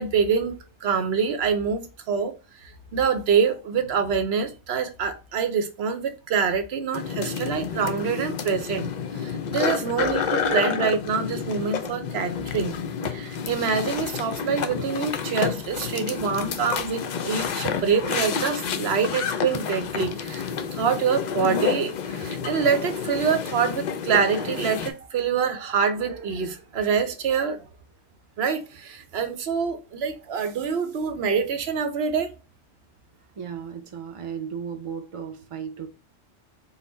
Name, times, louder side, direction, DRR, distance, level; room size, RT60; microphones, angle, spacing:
voice 1, 0.0-2.3 2.6-8.9 9.2-12.8 13.1-27.7 28.4-32.3, right 6 dB, 65° right, 0.8 m, -26 dB
sound 1, 6.9-24.9, left 6 dB, 65° left, 0.4 m, -29 dB
voice 2, 33.4-35.9, right 7 dB, 45° right, 0.4 m, -35 dB
4.1 x 2.1 x 3.8 m
omnidirectional pair, 1.2 m